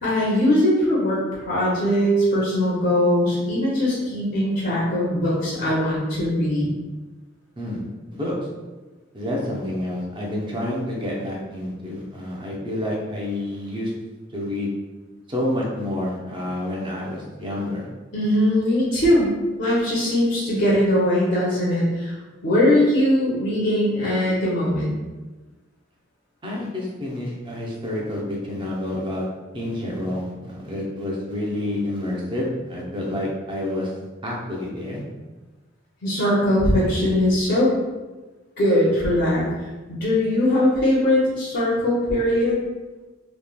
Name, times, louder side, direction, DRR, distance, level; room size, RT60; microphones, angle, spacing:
voice 1, 0.0-6.7 18.1-22.1 22.4-24.9 36.0-37.7 38.6-39.5 39.9-42.6, left 1 dB, 60° left, -6 dB, 0.6 m, -20 dB
voice 2, 9.1-13.9 14.3-14.7 15.3-17.9 26.4-29.3 29.5-33.9 34.2-35.0, left 1 dB, 25° right, -3 dB, 0.6 m, -28 dB
3.0 x 2.1 x 2.2 m, 1.2 s
head